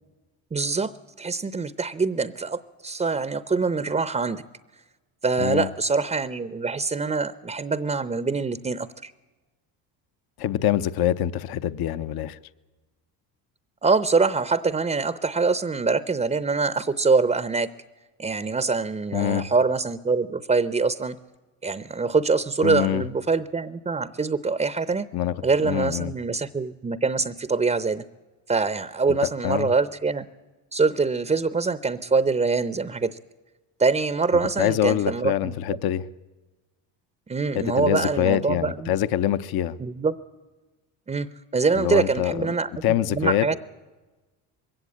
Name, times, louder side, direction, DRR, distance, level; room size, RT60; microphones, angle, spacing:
voice 1, 0.5-0.9 1.2-4.4 5.2-9.1 13.8-17.7 18.2-21.2 21.6-25.1 25.4-28.0 28.5-30.3 30.7-33.2 33.8-35.5 37.3-38.9 39.8-40.1 41.1-43.6, right 4 dB, 15° right, 0.7 m, -24 dB
voice 2, 10.4-12.4 19.1-19.5 22.6-23.0 25.1-25.3 25.6-26.1 29.4-29.7 34.6-36.0 37.5-39.7 41.7-42.5 42.8-43.5, left 12 dB, 55° left, 0.8 m, -24 dB
21.5 x 16.5 x 8.6 m
supercardioid pair, 80°, 46 cm